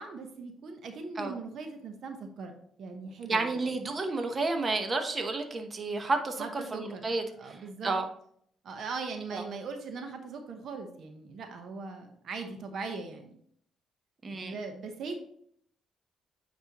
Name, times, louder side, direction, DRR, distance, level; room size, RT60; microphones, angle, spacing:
voice 1, 0.0-4.0 6.4-7.1 7.3-8.0 8.6-13.4 14.3-15.2, right 4 dB, 65° right, 5 dB, 0.9 m, -40 dB
voice 2, 3.3-6.4 6.7-7.6 7.8-8.0 9.3-9.4 14.2-14.5, right 3 dB, 35° right, 5 dB, 1.0 m, -31 dB
9.3 x 4.3 x 3.0 m, 0.64 s
cardioid pair, 90°, 0 cm